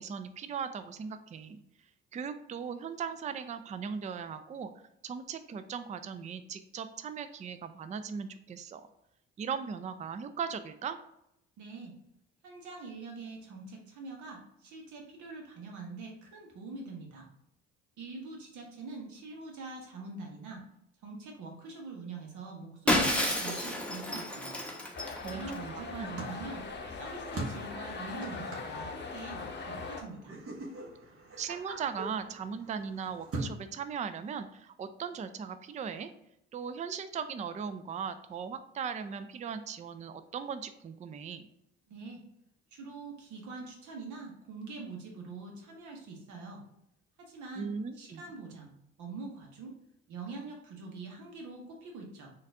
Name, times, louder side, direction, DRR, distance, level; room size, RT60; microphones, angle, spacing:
voice 1, 0.0-1.6 2.1-4.7 5.0-8.9 9.4-11.0 25.2-26.2 31.4-36.1 36.5-41.5 47.6-48.2, right 6 dB, 25° right, 10 dB, 0.4 m, -38 dB
voice 2, 11.6-11.9 12.4-17.3 18.0-20.6 21.0-24.6 25.3-26.6 27.0-30.4 41.9-42.2 42.7-46.6 47.2-47.7 47.9-48.7 49.0-49.7 50.1-52.3, right 3 dB, 70° right, 0 dB, 1.1 m, -44 dB
Shatter, 22.9-25.6, left 1 dB, 5° left, 0.9 m, -30 dB
sound 1, 24.9-30.0, left 4 dB, 35° left, 0.7 m, -41 dB
sound 2, 25.8-33.5, right 2 dB, 45° right, 1.1 m, -43 dB
3.9 x 2.6 x 3.3 m, 0.77 s
hypercardioid pair, 55°, 31 cm